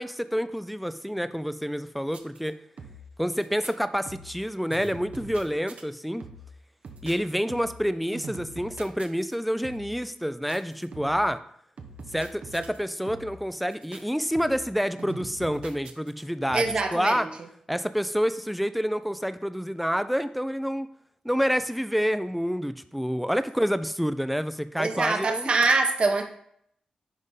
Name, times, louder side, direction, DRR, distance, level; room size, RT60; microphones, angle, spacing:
voice 1, 0.0-2.6 3.2-6.3 7.0-11.4 12.1-17.3 17.7-20.9 21.2-25.5, equal, ahead, 12 dB, 0.5 m, -28 dB
sound 1, 2.1-2.5 2.8-3.2 3.4-3.7 4.1-4.4 4.7-5.8 6.2-6.6 6.8-7.9 8.1-9.4 9.6-10.0 10.5-11.3 11.8-12.8 13.1-13.4 13.7-14.0 14.3-14.7 15.0-16.2 16.5-16.9, right 2 dB, 70° right, 0.9 m, -43 dB
voice 2, 16.5-17.3 24.8-26.2, right 3 dB, 50° right, 4 dB, 1.1 m, -24 dB
10.5 x 3.6 x 4.0 m, 0.69 s
cardioid pair, 85°, 2 cm